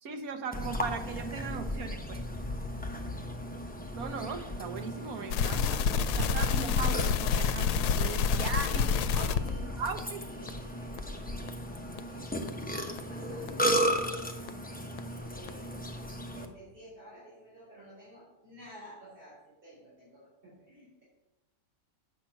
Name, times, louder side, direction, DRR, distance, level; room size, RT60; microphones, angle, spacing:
voice 1, 0.0-2.2 3.9-5.9 6.2-8.8 9.1-10.2, right 5 dB, 70° right, 7 dB, 1.4 m, -38 dB
Burping eructation, 0.5-16.5, equal, 10° left, 0.5 m, -35 dB
sound 1, 5.3-9.5 10.0-10.1 10.5-10.6 11.0-11.1 11.5-11.6 12.0-12.1 12.5-12.6 13.0-13.1 13.5-13.6 14.0-14.1 14.5-14.6 15.0-15.1 15.5-15.6, left 6 dB, 90° left, 1.1 m, -28 dB
voice 2, 8.3-10.0 10.3-11.1 11.4-15.7 16.3-21.0, right 1 dB, 35° right, -8 dB, 4.5 m, -53 dB
8.1 x 6.0 x 7.4 m, 0.98 s
omnidirectional pair, 1.6 m